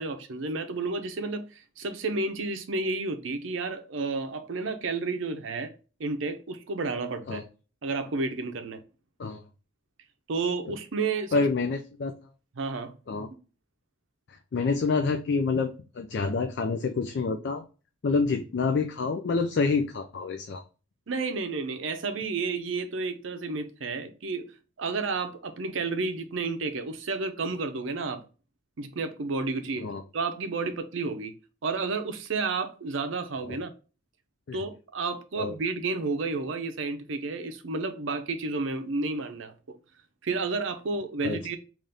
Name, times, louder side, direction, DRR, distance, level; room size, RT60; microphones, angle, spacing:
voice 1, 0.0-5.7 6.0-7.4 7.8-8.8 10.3-11.4 12.6-12.9 21.1-24.5 24.8-28.2 28.8-29.9 30.1-31.3 31.6-33.7 34.5-39.5 40.2-41.6, right 3 dB, 70° right, 0.6 m, -31 dB
voice 2, 11.3-12.1 13.1-13.3 14.5-17.6 18.0-20.6 29.8-30.0 33.5-33.6 34.5-34.6 35.4-35.6 41.2-41.4, left 4 dB, 55° left, 0.3 m, -27 dB
3.4 x 2.5 x 3.9 m
head